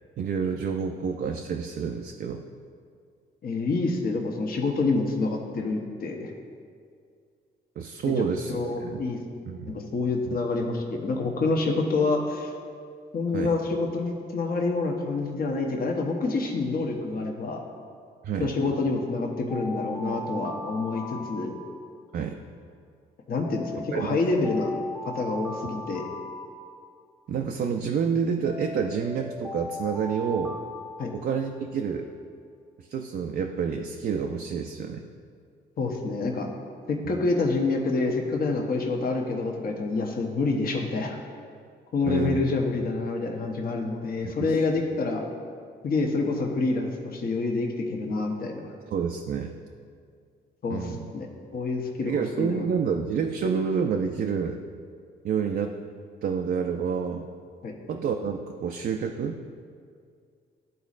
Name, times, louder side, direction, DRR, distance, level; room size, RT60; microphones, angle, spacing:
voice 1, 0.2-2.4 7.8-9.0 9.5-9.8 10.3-10.4 13.3-13.6 18.2-18.6 22.1-22.4 23.9-24.2 27.3-30.6 31.1-32.1 32.8-35.1 37.0-37.2 42.0-42.4 44.2-44.5 48.9-49.5 50.7-51.1 52.1-54.6 55.2-55.7 56.2-57.3 57.9-59.4, right 6 dB, 55° right, 3 dB, 0.4 m, -29 dB
voice 2, 3.4-6.3 8.5-9.2 9.6-12.5 13.1-17.6 18.4-21.5 23.3-24.7 25.0-26.0 31.0-31.1 35.8-36.5 36.9-41.2 41.9-45.2 45.8-48.7 50.6-51.3 51.5-52.7 57.6-57.7, left 3 dB, 45° left, 1 dB, 0.9 m, -27 dB
Alarm, 19.5-22.1 23.4-27.1 28.4-31.7, left 1 dB, 20° left, 1.0 m, -38 dB
12.0 x 4.1 x 2.5 m, 2.2 s
cardioid pair, 90°, 20 cm